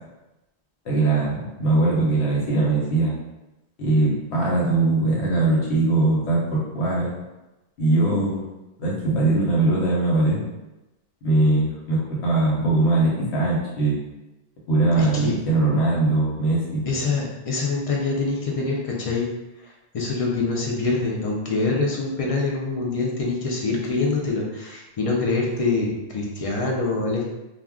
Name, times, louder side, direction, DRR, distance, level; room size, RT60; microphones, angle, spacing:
voice 1, 0.8-3.1 3.8-7.1 7.8-8.4 8.8-10.4 11.2-14.0 14.7-16.9, right 2 dB, 75° left, -4 dB, 1.1 m, -21 dB
voice 2, 15.0-15.4 16.9-19.3 19.6-27.2, left 3 dB, 60° left, -2 dB, 0.3 m, -25 dB
2.3 x 2.1 x 3.5 m, 1.0 s
omnidirectional pair, 1.1 m